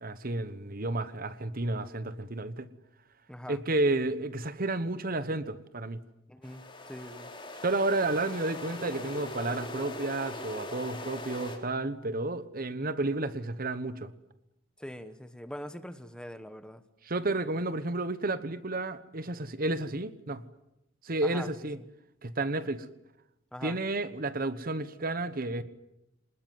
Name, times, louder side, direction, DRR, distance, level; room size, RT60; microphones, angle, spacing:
voice 1, 0.0-2.7 3.5-6.0 7.6-14.1 17.0-20.4 21.0-21.8 22.2-22.9 23.6-25.6, right 2 dB, 45° right, 14 dB, 1.2 m, -31 dB
voice 2, 3.3-3.6 6.3-7.3 14.8-16.8 21.2-21.5 21.8-21.9 23.5-23.8, equal, 5° left, 10 dB, 1.2 m, -43 dB
sound 1, 6.4-11.6, left 1 dB, 25° left, 3.9 m, -41 dB
26.0 x 20.5 x 9.4 m, 0.90 s
head